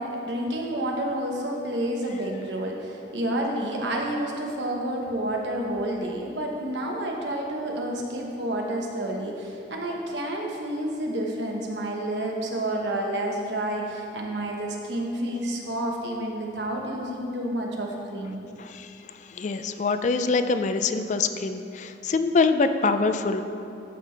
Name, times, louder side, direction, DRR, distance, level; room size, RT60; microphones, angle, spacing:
voice 1, 0.0-18.4, right 1 dB, 80° right, 0 dB, 1.1 m, -29 dB
voice 2, 19.3-23.4, left 4 dB, 40° left, 9 dB, 0.3 m, -24 dB
12.0 x 5.6 x 3.3 m, 2.7 s
head